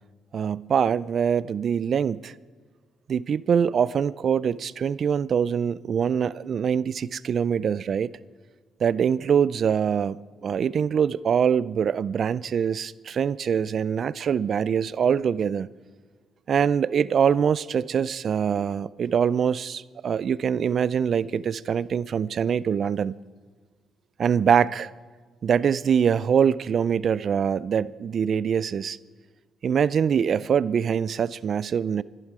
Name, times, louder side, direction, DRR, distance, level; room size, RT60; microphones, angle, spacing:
voice 1, 0.3-2.3 3.1-8.1 8.8-10.2 10.4-15.7 16.5-23.2 24.2-24.9 25.4-29.0 29.6-32.0, right 7 dB, 55° right, 0.4 m, -24 dB
22.0 x 11.0 x 4.8 m
cardioid pair, 90°, 0 cm